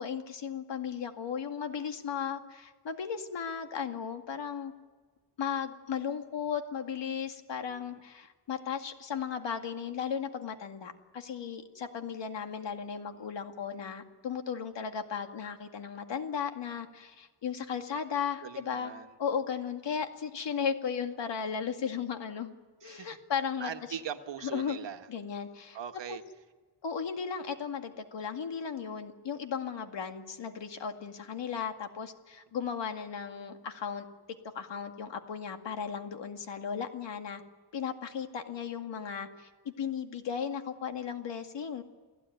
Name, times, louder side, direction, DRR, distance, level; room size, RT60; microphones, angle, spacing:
voice 1, 0.0-4.7 5.4-18.9 19.2-22.5 22.8-23.7 24.5-24.8 25.1-25.8 26.1-26.2 26.8-34.1 34.5-37.4 37.7-41.8, left 7 dB, 75° left, 5 dB, 2.2 m, -36 dB
voice 2, 18.4-19.1 22.8-23.2 23.6-25.1 25.7-26.2, right 8 dB, 75° right, 7 dB, 1.6 m, -40 dB
29.0 x 17.0 x 9.4 m, 1.3 s
wide cardioid pair, 165°, 44 cm